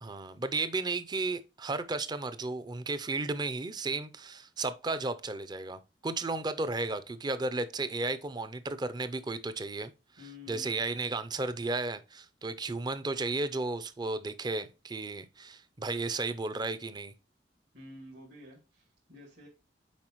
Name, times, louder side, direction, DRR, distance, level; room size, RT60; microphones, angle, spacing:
voice 1, 0.0-9.9 10.5-17.1, right 3 dB, 25° right, 0.5 m, -34 dB
voice 2, 10.2-10.8 17.7-19.5, left 2 dB, 70° right, 2.3 m, -50 dB
7.3 x 4.8 x 3.0 m
head